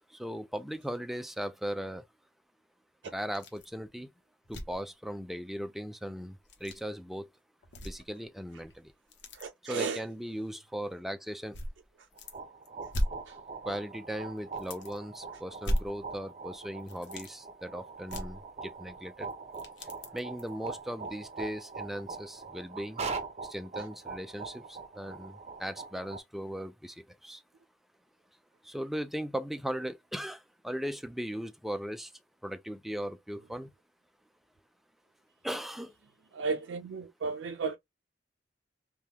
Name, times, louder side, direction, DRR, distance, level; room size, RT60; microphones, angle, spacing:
voice 1, 0.2-2.0 3.0-4.1 4.5-6.3 6.6-7.3 7.8-8.7 9.6-11.6 13.7-19.3 20.1-23.0 23.5-26.9 27.2-27.4 28.7-30.4 30.6-32.1 32.4-33.7 35.4-35.9, equal, ahead, 0.3 m, -38 dB
sound 1, 3.3-3.8 4.1-4.2 4.4-4.8 6.3-6.8 7.6-8.3 8.6-9.5 10.4-10.5 11.5-12.4 12.6-13.8 14.1-14.2 14.6-15.2 15.6-16.4 16.8-17.3 18.1-19.0 19.3-20.5 21.0-21.1 21.7-21.8, equal, 75° left, 0.9 m, -37 dB
voice 2, 9.3-10.0 13.3-13.4 36.3-37.8, right 4 dB, 90° right, 0.4 m, -34 dB
sound 2, 12.2-26.2, right 4 dB, 40° right, 0.7 m, -42 dB
3.4 x 2.3 x 2.8 m
head